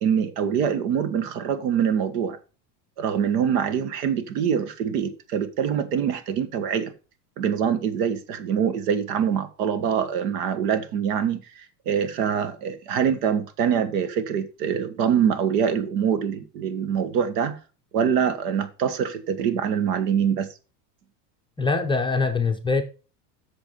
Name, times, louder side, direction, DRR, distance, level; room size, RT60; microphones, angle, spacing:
voice 1, 0.0-2.4 3.0-6.9 7.4-17.6 17.9-20.5, right 8 dB, 80° right, 1.6 m, -24 dB
voice 2, 21.6-22.8, left 4 dB, 10° left, 0.5 m, -23 dB
8.1 x 6.2 x 5.4 m
supercardioid pair, 140°, 47 cm